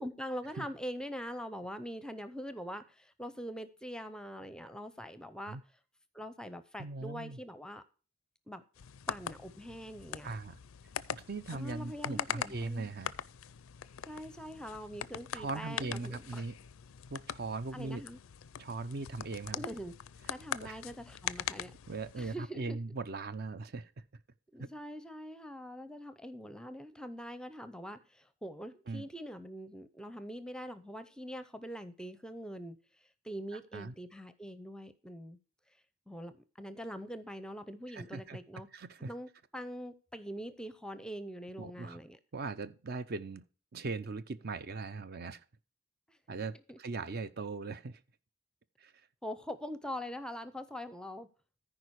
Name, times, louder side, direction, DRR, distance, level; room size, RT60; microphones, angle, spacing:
voice 1, 0.0-5.6 6.1-7.8 8.5-8.6 9.1-10.3 11.5-12.9 14.0-16.4 17.7-18.2 19.5-19.9 20.3-21.7 22.2-22.8 24.5-32.8 33.2-35.4 36.1-38.7 39.1-42.2 46.1-46.2 46.7-46.8 49.2-51.3, equal, 5° left, 0.5 m, -43 dB
voice 2, 6.8-7.4 10.2-10.6 11.1-13.1 15.3-16.5 17.1-18.0 18.6-19.6 20.6-20.8 21.9-23.9 24.6-24.7 28.9-29.1 33.5-33.9 37.9-38.4 38.7-39.1 41.6-42.0 42.3-43.4 43.7-45.4 46.3-48.0 48.8-48.9, right 3 dB, 45° right, 0.5 m, -39 dB
sound 1, 8.8-22.3, left 9 dB, 75° left, 0.4 m, -42 dB
14.0 x 4.9 x 4.6 m
head